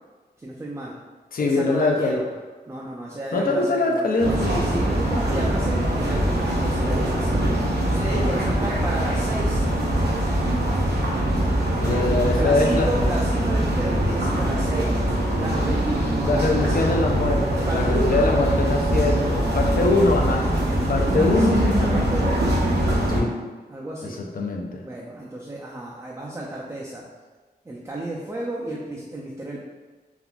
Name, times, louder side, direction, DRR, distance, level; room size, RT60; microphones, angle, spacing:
voice 1, 0.4-1.0 1.4-2.2 2.7-7.4 7.8-9.7 11.9-15.0 15.4-16.8 17.7-18.3 21.0-22.5 23.7-24.2 24.8-27.0 27.7-29.6, right 1 dB, 15° right, -4 dB, 0.3 m, -32 dB
voice 2, 1.3-2.2 3.3-4.6 8.2-8.4 11.8-12.9 16.3-20.5 20.9-21.7 23.1-23.4 24.0-24.8, left 2 dB, 60° left, 1 dB, 0.4 m, -23 dB
sound 1, 4.2-23.2, right 1 dB, 80° right, 0.6 m, -22 dB
3.5 x 2.4 x 2.2 m, 1.3 s
wide cardioid pair, 95°, 17 cm